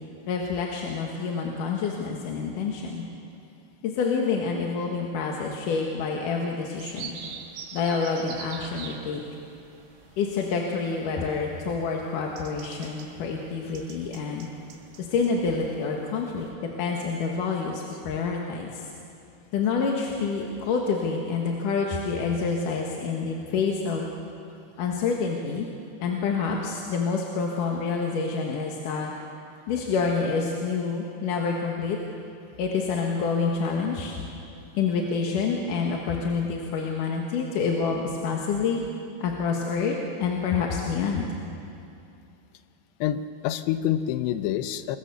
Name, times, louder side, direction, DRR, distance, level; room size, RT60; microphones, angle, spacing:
voice 1, 0.3-3.0 3.8-7.2 7.7-9.2 10.2-14.5 15.0-18.9 19.5-24.1 24.8-25.7 26.0-29.1 29.7-32.0 32.6-34.2 34.7-38.8 39.2-41.3, left 5 dB, 60° left, 0 dB, 2.7 m, -27 dB
sound 1, 6.7-16.5, right 6 dB, 85° right, 4.0 m, -45 dB
voice 2, 43.0-45.0, left 11 dB, 85° left, 11 dB, 3.0 m, -27 dB
28.5 x 21.5 x 6.9 m, 2.6 s
omnidirectional pair, 4.8 m